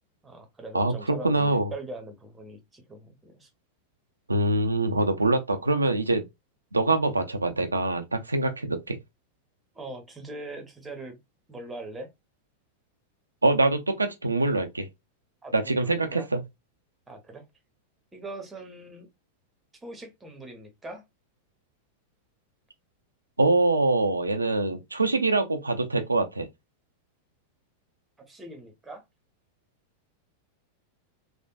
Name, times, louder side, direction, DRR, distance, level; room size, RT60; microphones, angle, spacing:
voice 1, 0.2-3.5 9.7-11.2 11.5-12.1 15.4-16.3 17.1-17.5 18.1-19.1 19.7-21.0 28.2-29.0, right 2 dB, 10° right, 0.8 m, -41 dB
voice 2, 0.7-1.7 4.3-6.2 6.7-9.0 13.4-14.9 15.5-16.4 23.4-26.5, right 2 dB, 80° right, 0.4 m, -24 dB
3.4 x 2.1 x 2.3 m
figure-of-eight pair, 90°, 0 cm